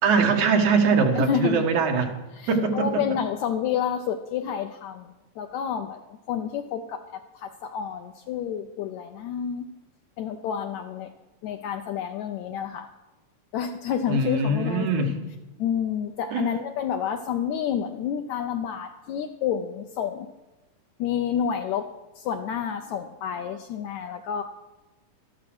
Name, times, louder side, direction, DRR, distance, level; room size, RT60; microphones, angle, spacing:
voice 1, 0.0-2.1 2.5-3.0 14.1-15.1 16.3-16.5, right 4 dB, 65° right, 3 dB, 2.8 m, -22 dB
voice 2, 1.1-1.7 2.3-9.7 10.2-11.1 11.4-12.9 13.5-15.1 15.6-20.3 21.0-21.9 22.2-24.4, left 8 dB, 75° left, 7 dB, 1.7 m, -29 dB
12.5 x 12.5 x 6.1 m, 1.1 s
omnidirectional pair, 3.8 m